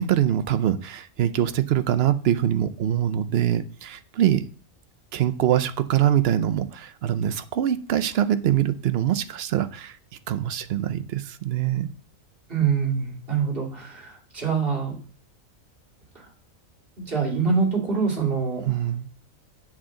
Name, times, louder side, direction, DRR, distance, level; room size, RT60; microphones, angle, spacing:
voice 1, 0.0-4.4 5.1-9.9 10.3-11.9 18.7-19.1, right 11 dB, 60° right, 12 dB, 0.7 m, -23 dB
voice 2, 12.5-15.0 17.0-18.8, right 5 dB, 45° right, -2 dB, 2.4 m, -25 dB
7.4 x 7.4 x 3.7 m, 0.41 s
omnidirectional pair, 1.4 m